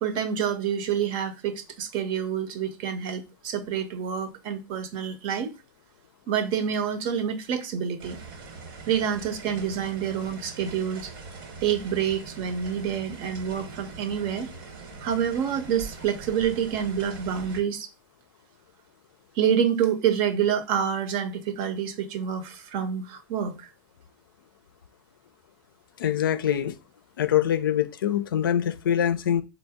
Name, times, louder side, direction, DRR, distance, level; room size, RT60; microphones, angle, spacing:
voice 1, 0.0-5.5 6.3-8.2 8.9-11.1 11.6-14.5 15.0-17.9 19.3-23.7, right 8 dB, 50° right, 0.7 m, -27 dB
sound 1, 8.0-17.6, right 4 dB, 70° right, 1.1 m, -42 dB
voice 2, 26.0-26.7 27.2-29.4, left 10 dB, 80° left, 0.4 m, -24 dB
4.1 x 2.0 x 3.4 m
hypercardioid pair, 85°, 11 cm